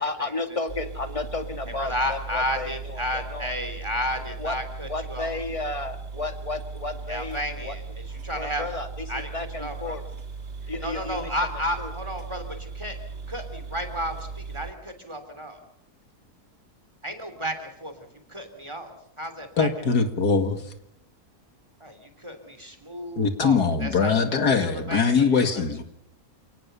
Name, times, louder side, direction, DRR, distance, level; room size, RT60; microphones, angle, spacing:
voice 1, 0.0-3.5 4.4-4.6 4.9-7.8 8.3-10.0 10.7-11.3 11.8-11.9, left 3 dB, 20° left, 2.1 m, -33 dB
sound 1, 0.7-14.7, right 4 dB, 40° right, 1.7 m, -38 dB
voice 2, 1.8-5.3 7.1-7.8 8.2-8.7 9.1-9.3 9.5-10.0 10.8-13.0 13.3-15.6 17.0-19.7 21.8-25.6, equal, 15° right, 3.3 m, -32 dB
voice 3, 19.6-20.6 23.2-25.8, left 5 dB, 80° left, 2.6 m, -22 dB
28.5 x 19.0 x 6.9 m
omnidirectional pair, 1.7 m